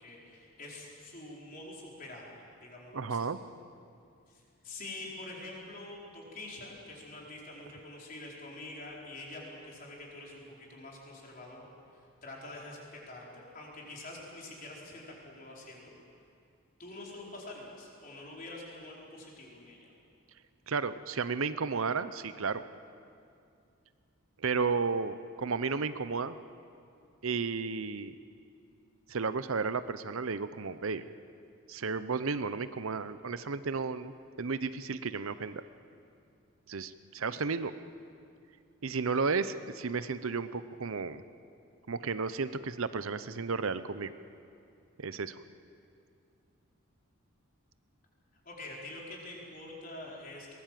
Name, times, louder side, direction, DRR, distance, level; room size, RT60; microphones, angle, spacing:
voice 1, 0.0-3.2 4.3-15.9 16.8-19.9 48.4-50.5, left 2 dB, 40° left, -3 dB, 4.7 m, -46 dB
voice 2, 2.9-3.4 20.7-22.6 24.4-26.4 27.2-28.1 29.1-31.1 31.7-34.1 34.4-35.6 36.7-37.8 38.8-41.2 41.9-44.1 45.0-45.4, right 4 dB, 70° right, 13 dB, 0.7 m, -33 dB
22.5 x 20.0 x 7.6 m, 2.4 s
head